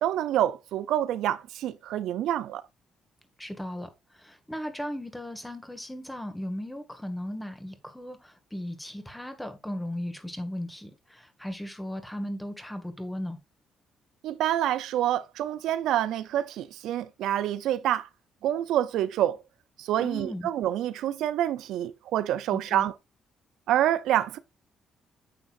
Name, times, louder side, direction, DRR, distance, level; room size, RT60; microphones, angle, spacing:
voice 1, 0.0-2.6 14.2-18.1 18.4-19.4 19.8-22.9 23.7-24.4, right 12 dB, 85° right, 0.6 m, -27 dB
voice 2, 3.4-13.4 20.0-20.5 22.5-22.9, left 1 dB, 5° left, 2.1 m, -37 dB
9.3 x 6.7 x 2.6 m
cardioid pair, 90°, 0 cm